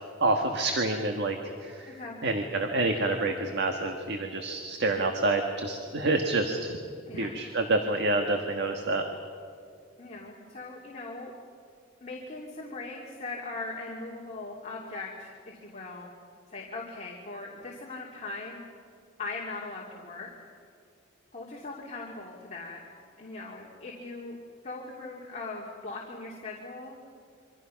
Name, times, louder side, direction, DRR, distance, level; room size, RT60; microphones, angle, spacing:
voice 1, 0.0-1.4 1.6-1.9 2.2-6.8 7.2-9.0, right 2 dB, 60° right, 4 dB, 1.6 m, -28 dB
voice 2, 1.9-2.4 7.1-7.4 10.0-11.3 12.0-16.1 16.5-18.6 19.2-20.3 21.3-22.8 23.2-24.4 24.6-27.1, left 3 dB, 35° left, -3 dB, 2.9 m, -40 dB
27.5 x 24.5 x 5.9 m, 2.3 s
head